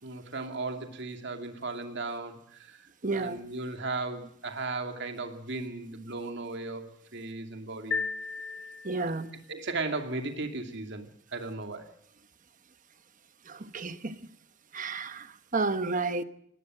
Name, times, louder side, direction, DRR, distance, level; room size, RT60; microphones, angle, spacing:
voice 1, 0.0-8.0 9.0-9.1 9.5-11.9, right 3 dB, 60° right, 2.6 m, -36 dB
voice 2, 3.0-3.4 8.8-9.3 13.5-14.2 14.7-16.2, right 3 dB, 40° right, 1.2 m, -31 dB
sound 1, 7.9-9.4, left 4 dB, 60° left, 1.0 m, -35 dB
19.0 x 18.5 x 7.7 m
head